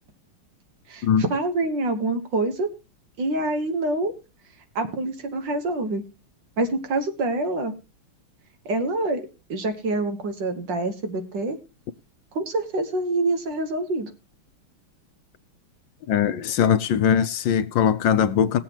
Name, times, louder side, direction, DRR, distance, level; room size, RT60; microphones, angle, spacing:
voice 1, 0.9-2.7 3.2-4.1 4.8-6.0 6.6-7.7 8.7-9.2 9.5-11.6 12.4-14.1, right 2 dB, 60° right, 1.9 m, -26 dB
voice 2, 16.1-18.6, left 8 dB, 70° left, 1.3 m, -20 dB
20.0 x 7.6 x 2.9 m
omnidirectional pair, 2.4 m